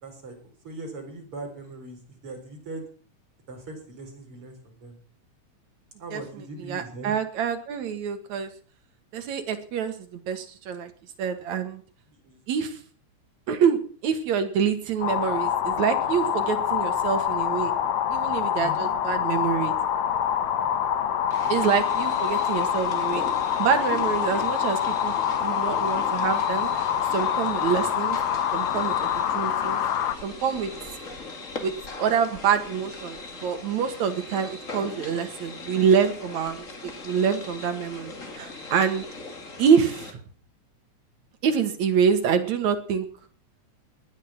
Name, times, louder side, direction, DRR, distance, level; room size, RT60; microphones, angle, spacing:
voice 1, 0.0-0.4 0.6-2.9 3.5-4.9 6.0-7.1 12.2-12.4 18.6-18.9, right 2 dB, 45° right, 2 dB, 5.4 m, -40 dB
voice 2, 6.6-8.5 9.1-10.9 11.2-11.8 12.5-12.8 13.5-17.7 18.1-19.7 21.5-23.2 23.6-25.2 25.4-26.7 27.1-28.2 28.5-29.8 30.2-30.7 31.6-39.0 39.6-40.2 41.4-43.1, right 7 dB, 70° right, 7 dB, 3.0 m, -26 dB
sound 1, 15.0-30.2, left 9 dB, 70° left, 2.4 m, -26 dB
sound 2, 21.3-40.1, left 3 dB, 30° left, 2.1 m, -40 dB
19.5 x 10.5 x 5.9 m, 0.42 s
omnidirectional pair, 3.4 m